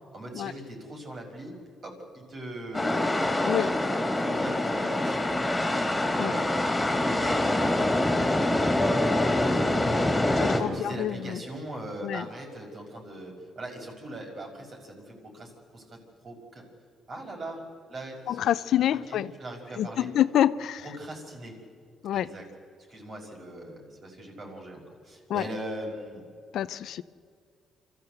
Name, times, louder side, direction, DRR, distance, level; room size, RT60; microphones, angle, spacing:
voice 1, 0.1-1.5 1.8-3.2 4.2-5.3 5.7-7.5 9.4-16.7 17.1-17.6 17.9-18.5 19.1-20.1 20.8-21.5 22.1-22.4 22.9-26.2, right 1 dB, 45° right, 1 dB, 5.8 m, -40 dB
sound 1, 2.7-10.6, left 1 dB, 15° left, 3.3 m, -25 dB
sound 2, 8.8-10.7, left 2 dB, 15° right, 3.2 m, -36 dB
voice 2, 10.4-11.4 12.0-12.3 18.3-19.3 19.8-20.8 22.0-22.3 25.3-25.4 26.5-27.0, left 11 dB, 75° left, 15 dB, 0.6 m, -27 dB
26.0 x 14.0 x 8.0 m, 2.1 s
cardioid pair, 90°, 0 cm